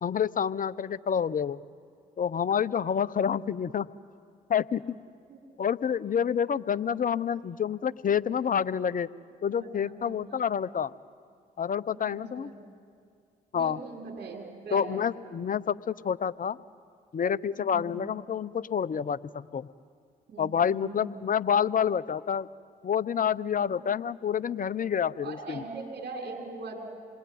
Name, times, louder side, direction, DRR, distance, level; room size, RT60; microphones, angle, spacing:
voice 1, 0.0-1.6 2.2-3.9 4.5-5.0 5.6-9.1 9.4-10.9 11.6-12.5 13.5-13.8 14.7-16.6 17.1-19.7 20.4-22.5 22.8-25.6, left 8 dB, 45° left, 16 dB, 0.8 m, -28 dB
voice 2, 9.5-10.4 12.0-12.5 13.5-15.4 17.6-18.1 20.3-21.1 25.2-26.9, right 3 dB, 60° right, 0 dB, 5.9 m, -41 dB
28.0 x 21.0 x 9.4 m, 2.3 s
hypercardioid pair, 45°, 20 cm